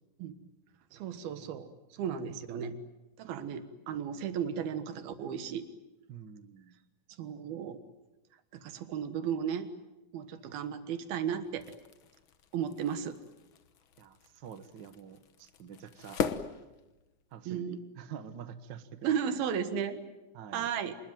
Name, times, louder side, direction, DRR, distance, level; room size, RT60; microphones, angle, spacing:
voice 1, 0.9-2.8 3.2-5.7 7.2-7.8 8.5-9.7 10.1-11.6 12.5-13.2 17.5-17.8 19.0-20.0 20.5-21.0, right 8 dB, 85° right, 10 dB, 3.4 m, -34 dB
voice 2, 6.1-6.7 14.0-16.2 17.3-19.4 20.3-20.7, right 8 dB, 70° right, 10 dB, 1.1 m, -47 dB
sound 1, 11.4-17.4, left 6 dB, 90° left, 1.1 m, -41 dB
27.0 x 20.5 x 9.2 m, 1.1 s
omnidirectional pair, 4.2 m